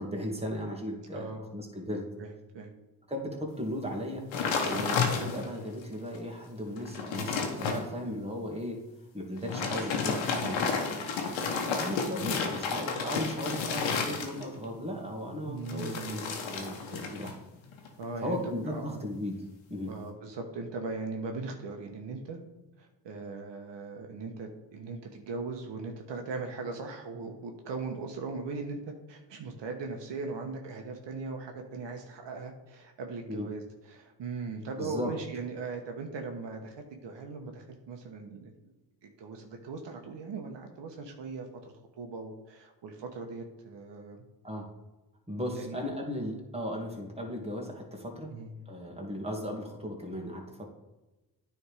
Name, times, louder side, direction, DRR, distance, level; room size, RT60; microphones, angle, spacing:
voice 1, 0.0-2.0 3.1-4.2 4.6-8.8 9.1-10.8 11.6-17.4 18.2-19.4 19.7-19.9 33.3-33.5 34.8-35.1 44.4-44.7 45.3-48.3 48.7-50.7, equal, 15° right, 0 dB, 2.1 m, -36 dB
voice 2, 2.2-2.7 4.7-4.9 10.2-10.6 15.5-16.2 18.0-18.4 18.7-19.1 19.9-22.4 22.8-28.8 29.1-38.5 39.2-41.5 42.0-44.2 45.5-45.8 48.3-48.6, right 4 dB, 70° right, 3 dB, 1.1 m, -39 dB
sound 1, 4.3-5.6 6.1-6.2 6.7-7.8 9.4-14.6 15.7-17.4 17.6-18.0, left 5 dB, 90° left, 1.1 m, -31 dB
9.4 x 3.6 x 4.8 m, 1.1 s
supercardioid pair, 60°, 44 cm